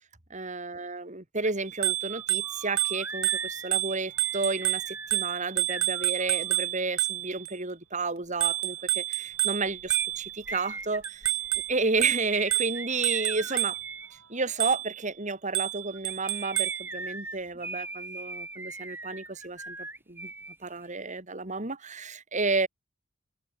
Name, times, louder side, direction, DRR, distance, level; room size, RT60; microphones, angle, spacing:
voice 1, 0.3-11.3 11.7-13.8 14.3-19.8 20.1-20.3 20.6-22.7, right 3 dB, 35° right, 2.6 m, -31 dB
sound 1, 1.4-1.5 1.8-6.6 9.9-14.1 15.9-20.6 20.8-20.9, right 2 dB, 10° right, 4.6 m, -40 dB
Bicycle bell, 1.7-7.5 8.4-10.5 11.0-14.0 14.6-15.0 15.6-16.9, right 17 dB, 85° right, 4.2 m, -29 dB
head